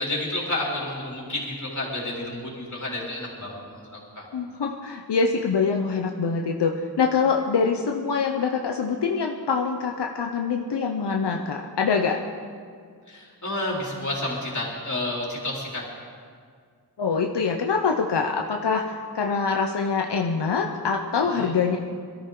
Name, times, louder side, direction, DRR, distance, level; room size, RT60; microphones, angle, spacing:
voice 1, 0.0-4.2 13.1-15.8 21.2-21.5, left 1 dB, 45° left, -4 dB, 4.0 m, -30 dB
voice 2, 4.3-12.2 17.0-21.8, left 5 dB, 90° left, 2 dB, 0.9 m, -24 dB
22.0 x 13.5 x 3.9 m, 2.1 s
wide cardioid pair, 95°, 40 cm